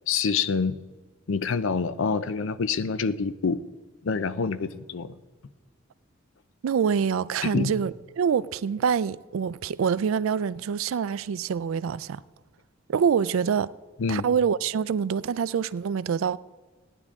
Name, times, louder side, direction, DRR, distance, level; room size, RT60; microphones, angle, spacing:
voice 1, 0.1-0.8 1.3-3.6 4.0-5.2 7.4-7.7 14.0-14.2, left 5 dB, 65° left, 0.5 m, -26 dB
voice 2, 6.6-12.2 12.9-13.7 14.1-16.4, right 7 dB, 75° right, 0.3 m, -25 dB
16.5 x 10.0 x 3.6 m
head